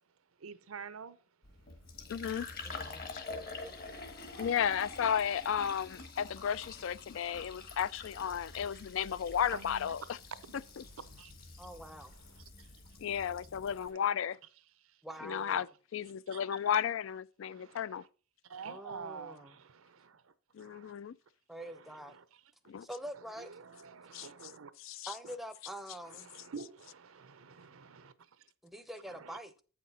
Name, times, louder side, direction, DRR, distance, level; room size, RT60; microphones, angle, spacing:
voice 1, 0.4-1.2 3.1-4.5 9.5-10.1 10.5-10.6 11.0-11.3 11.8-12.7 13.8-14.0 14.8-15.3 16.3-16.4 17.4-18.1 18.4-20.9 21.6-22.4 23.1-24.7 25.2-25.4 26.0-28.5 29.1-29.4, right 5 dB, 80° right, 0.7 m, -50 dB
Fill (with liquid), 1.4-13.9, left 3 dB, 45° left, 1.4 m, -47 dB
voice 2, 2.1-2.5 3.1-3.2 4.4-10.0 13.0-14.4 15.2-15.7 15.9-18.0 20.5-21.1 22.7-22.9 24.1-24.3 24.8-25.1, left 8 dB, 65° left, 0.3 m, -33 dB
voice 3, 2.6-3.0 11.6-12.1 15.0-15.7 18.6-19.5 21.5-22.1 22.8-23.5 25.1-26.3 28.6-29.5, equal, ahead, 0.6 m, -45 dB
8.3 x 5.9 x 4.1 m
head